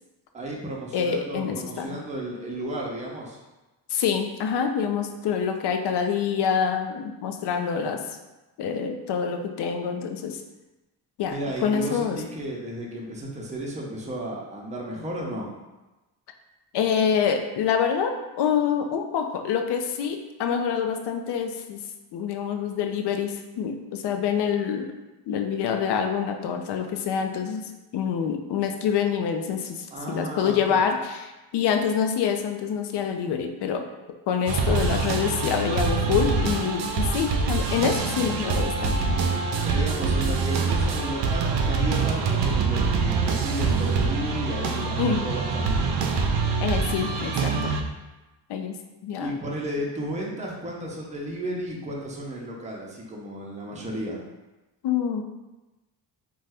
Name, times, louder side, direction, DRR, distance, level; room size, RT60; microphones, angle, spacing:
voice 1, 0.3-3.4 11.3-15.5 29.9-30.8 39.5-45.9 49.2-54.2, right 1 dB, 15° right, -2 dB, 0.6 m, -33 dB
voice 2, 0.9-2.0 3.9-8.0 8.6-10.4 11.2-12.2 16.7-21.8 22.1-24.9 25.3-33.8 34.3-39.2 45.0-45.2 46.6-47.7 48.5-48.7 49.0-49.3 54.8-55.2, left 7 dB, 65° left, 5 dB, 0.5 m, -26 dB
sound 1, 34.5-47.8, right 4 dB, 70° right, 0.5 m, -25 dB
2.6 x 2.3 x 3.3 m, 1.1 s
cardioid pair, 65°, 44 cm